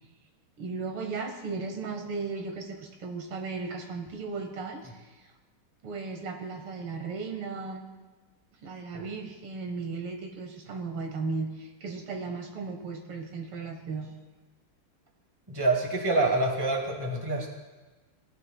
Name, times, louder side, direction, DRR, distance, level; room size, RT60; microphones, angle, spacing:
voice 1, 0.6-5.2 5.8-7.8 8.6-14.1, right 4 dB, 75° right, 4 dB, 2.1 m, -36 dB
voice 2, 15.5-17.5, right 2 dB, 10° right, 0 dB, 1.6 m, -26 dB
19.0 x 12.5 x 2.3 m, 1.2 s
omnidirectional pair, 2.4 m